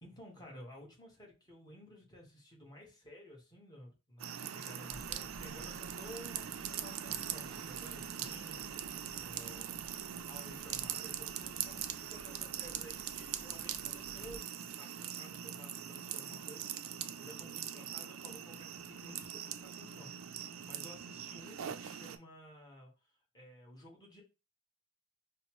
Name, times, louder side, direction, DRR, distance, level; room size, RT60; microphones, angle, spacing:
voice 1, 0.0-9.7 10.3-14.5 14.7-24.2, equal, 20° left, -2 dB, 1.2 m, -54 dB
sound 1, 4.2-22.2, right 9 dB, 90° right, 0.4 m, -42 dB
sound 2, 4.9-14.4, equal, 20° right, 0.6 m, -57 dB
5.2 x 2.0 x 3.0 m, 0.29 s
head